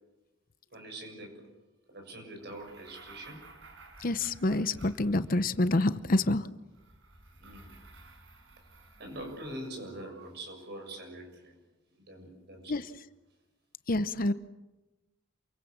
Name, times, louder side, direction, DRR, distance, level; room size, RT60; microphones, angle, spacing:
voice 1, 0.7-1.5 1.9-3.5 7.4-7.8 9.0-11.6 11.9-12.8, right 1 dB, 55° right, 4 dB, 6.8 m, -44 dB
sound 1, 2.4-5.6 6.7-9.9, right 3 dB, 75° right, 5.5 m, -54 dB
voice 2, 4.0-6.5 12.7-12.8 13.9-14.3, left 2 dB, 45° left, 13 dB, 0.8 m, -27 dB
28.0 x 23.5 x 7.3 m, 1.1 s
head